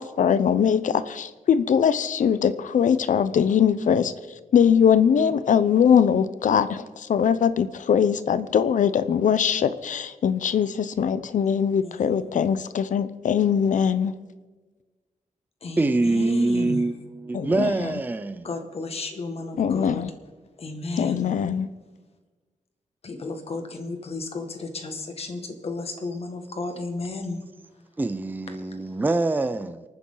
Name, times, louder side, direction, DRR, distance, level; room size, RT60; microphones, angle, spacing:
voice 1, 0.0-4.1 4.5-14.1 17.3-17.7 19.6-20.1 21.0-21.7, left 7 dB, 70° left, 0.7 m, -21 dB
voice 2, 11.8-12.2 15.6-16.9 18.4-20.0 20.6-21.3 23.0-27.4, left 3 dB, 50° left, 1.9 m, -33 dB
voice 3, 15.8-18.5 28.0-29.8, right 2 dB, 15° right, 0.5 m, -24 dB
28.5 x 9.7 x 3.9 m
wide cardioid pair, 150°, 13 cm